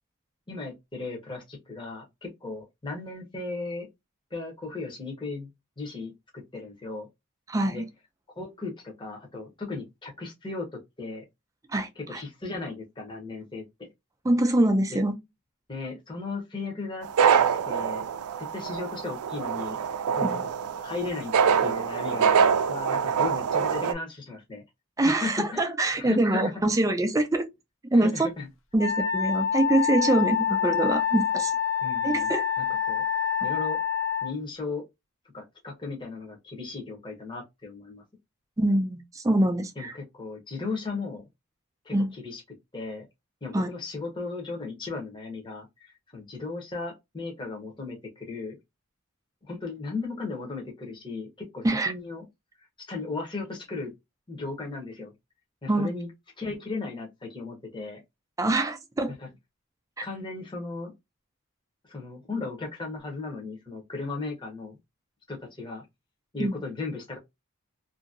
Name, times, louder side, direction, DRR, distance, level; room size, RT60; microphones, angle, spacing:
voice 1, 0.5-3.9 4.3-5.5 5.8-7.1 7.7-7.8 8.4-11.2 12.0-13.6 14.9-15.0 15.7-18.1 18.4-19.8 20.1-20.4 20.8-21.3 21.6-24.6 25.0-26.7 27.9-28.5 31.8-32.3 32.6-33.0 33.4-33.8 34.2-34.8 35.3-38.0 39.8-41.2 41.8-42.4 42.7-43.0 43.4-48.6 49.4-52.2 52.6-53.9 54.3-55.1 55.6-56.1 56.4-58.0 59.1-59.3 60.0-60.9 61.8-64.8 65.3-65.8 66.3-67.2, left 3 dB, 20° left, 0.8 m, -36 dB
voice 2, 7.5-7.9 11.7-12.2 14.2-15.1 20.2-20.4 25.0-27.5 27.9-28.1 28.7-31.5 32.0-32.5 38.6-39.9 41.9-42.1 43.5-43.7 51.6-51.9 55.7-55.9 58.4-59.1 60.0-60.1 66.4-66.5, right 1 dB, 15° right, 0.4 m, -24 dB
sound 1, 17.0-23.9, right 7 dB, 85° right, 0.4 m, -25 dB
Wind instrument woodwind instrument, 28.8-34.3, left 8 dB, 60° left, 0.6 m, -26 dB
2.8 x 2.6 x 2.5 m
head